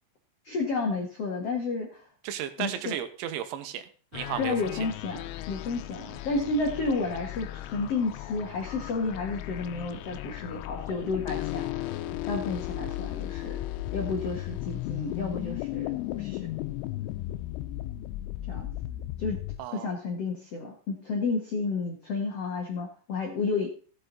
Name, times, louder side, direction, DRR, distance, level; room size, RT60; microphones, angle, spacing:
voice 1, 0.4-2.0 2.6-3.0 4.4-5.2 5.5-11.8 12.2-13.6 13.9-16.5 18.5-18.7 19.2-19.4 19.7-23.7, left 3 dB, 75° left, 1 dB, 1.4 m, -31 dB
voice 2, 2.2-3.9 4.1-4.6 19.6-19.9, right 11 dB, 85° right, 9 dB, 3.3 m, -34 dB
sound 1, 4.1-19.6, left 14 dB, 90° left, 3.2 m, -36 dB
15.5 x 7.7 x 4.0 m, 0.40 s
omnidirectional pair, 5.4 m